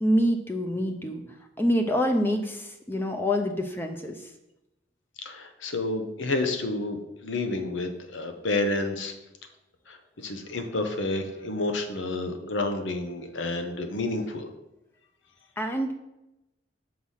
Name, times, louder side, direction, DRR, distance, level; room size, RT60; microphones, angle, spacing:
voice 1, 0.0-4.3 15.6-15.9, equal, 10° left, 4 dB, 0.5 m, -26 dB
voice 2, 5.2-9.1 9.9-14.5, left 2 dB, 85° left, 6 dB, 0.9 m, -30 dB
6.0 x 4.8 x 5.6 m, 0.91 s
head